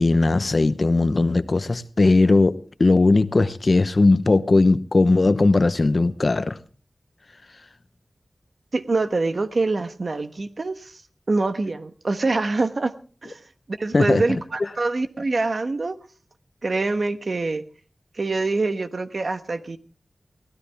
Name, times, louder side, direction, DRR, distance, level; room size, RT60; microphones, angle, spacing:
voice 1, 0.0-6.6 13.9-14.2, left 3 dB, 50° left, 0.9 m, -18 dB
voice 2, 8.7-11.0 11.3-13.0 13.2-13.4 13.7-16.0 16.6-17.6 18.1-19.8, right 3 dB, 60° right, 1.2 m, -25 dB
23.0 x 16.5 x 3.5 m
wide cardioid pair, 75°, 0 cm